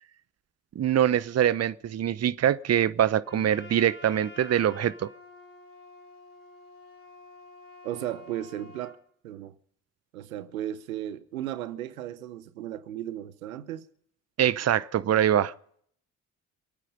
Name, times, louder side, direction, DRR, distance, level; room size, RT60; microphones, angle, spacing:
voice 1, 0.8-5.1 14.4-15.5, right 10 dB, 40° right, 0.8 m, -24 dB
Trumpet, 3.2-9.0, left 3 dB, 35° left, 6.3 m, -49 dB
voice 2, 7.8-9.0 9.2-9.5 10.1-13.9, right 12 dB, 90° right, 0.8 m, -35 dB
27.0 x 9.3 x 5.3 m
hypercardioid pair, 50°, 41 cm